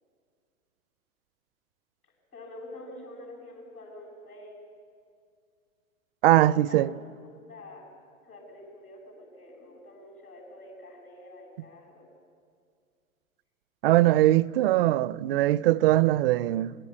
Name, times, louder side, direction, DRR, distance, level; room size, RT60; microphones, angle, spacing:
voice 1, 2.3-4.6 6.7-7.9 8.3-12.1, left 1 dB, 90° left, 7.7 m, -46 dB
voice 2, 6.2-6.9 13.8-16.8, right 15 dB, 45° right, 0.5 m, -21 dB
22.5 x 16.5 x 8.4 m
figure-of-eight pair, 105°, 43 cm